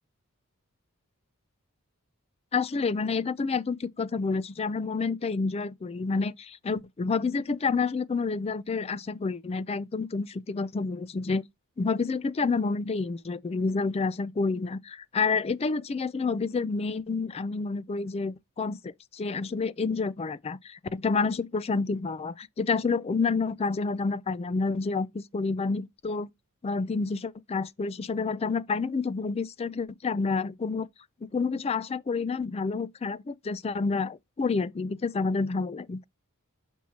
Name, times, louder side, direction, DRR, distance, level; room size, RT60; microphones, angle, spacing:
voice 1, 2.5-11.4 11.8-26.3 26.6-30.9 31.2-36.0, left 4 dB, 25° left, 0.3 m, -29 dB
6.2 x 5.7 x 2.8 m
head